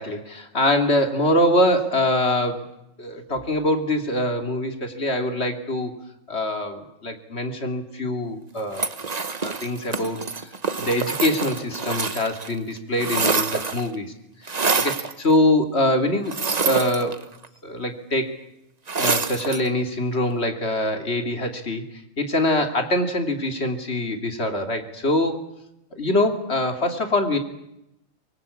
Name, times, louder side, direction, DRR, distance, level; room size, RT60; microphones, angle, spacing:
voice 1, 0.0-2.7 3.0-5.9 6.3-8.9 9.4-14.1 14.8-16.4 16.6-17.2 17.6-18.4 19.0-21.9 22.2-25.5 25.9-27.4, left 1 dB, 50° left, 6 dB, 3.0 m, -24 dB
sound 1, 8.7-12.5 12.8-13.9 14.5-15.1 16.3-17.5 18.9-19.7, right 4 dB, 35° right, 1.1 m, -26 dB
25.0 x 23.0 x 8.5 m, 0.85 s
omnidirectional pair, 1.4 m